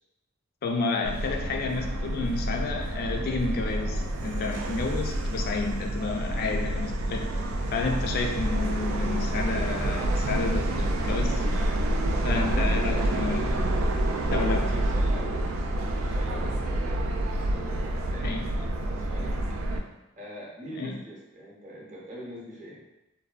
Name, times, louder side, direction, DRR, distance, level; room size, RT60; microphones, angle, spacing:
voice 1, 0.6-7.4 7.7-11.4 12.2-13.6 14.3-14.7 18.2-18.5 20.8-21.0, left 4 dB, 50° left, 2 dB, 0.3 m, -31 dB
Subway metro underground, 1.0-19.8, right 1 dB, 85° right, 0.3 m, -28 dB
voice 2, 12.4-13.6 14.5-15.4 15.8-18.4 18.9-19.4 20.2-22.8, equal, 40° right, -4 dB, 0.7 m, -42 dB
2.6 x 2.2 x 2.3 m, 0.93 s
head